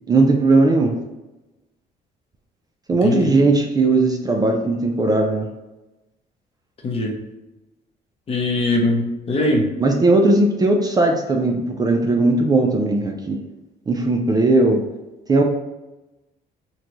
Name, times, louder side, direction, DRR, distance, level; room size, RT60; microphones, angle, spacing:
voice 1, 0.1-0.9 2.9-5.5 9.8-13.4 13.9-14.8 15.3-15.4, right 2 dB, 25° right, 2 dB, 0.3 m, -18 dB
voice 2, 6.8-7.2 8.3-9.7, left 1 dB, 35° left, 1 dB, 0.7 m, -21 dB
3.0 x 2.2 x 3.8 m, 1.0 s
cardioid pair, 110°, 17 cm